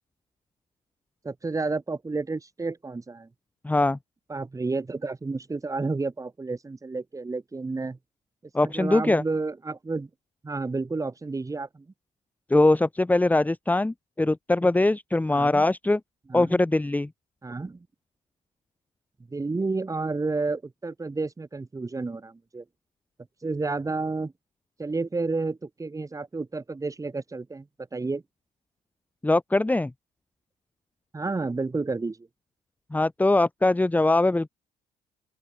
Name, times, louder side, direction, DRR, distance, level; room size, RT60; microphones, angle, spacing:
voice 1, 1.2-3.3 4.3-8.0 8.6-10.1 10.4-11.9 15.3-15.7 16.3-16.6 17.4-17.9 19.3-22.6 23.4-24.3 24.8-27.7 27.9-28.2 31.1-32.3, right 3 dB, 20° right, 7.8 m, -31 dB
voice 2, 3.6-4.0 8.5-9.2 12.5-16.0 16.3-17.1 29.2-29.9 32.9-34.5, left 2 dB, 10° left, 1.6 m, -22 dB
open air
cardioid pair, 110°, 17 cm